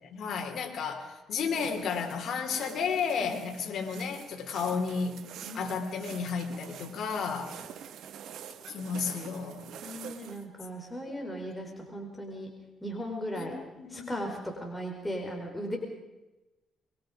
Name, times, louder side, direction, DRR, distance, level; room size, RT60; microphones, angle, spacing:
voice 1, 0.0-5.3 5.5-7.5 8.7-9.7 11.1-11.2 13.3-14.3, left 6 dB, 65° left, 3 dB, 3.9 m, -33 dB
sound 1, 1.4-10.4, right 9 dB, 75° right, 1.7 m, -46 dB
voice 2, 9.8-12.5 12.8-13.6 13.9-15.8, equal, 10° left, 0 dB, 4.9 m, -37 dB
25.5 x 23.0 x 5.2 m, 1.0 s
cardioid pair, 90°, 0 cm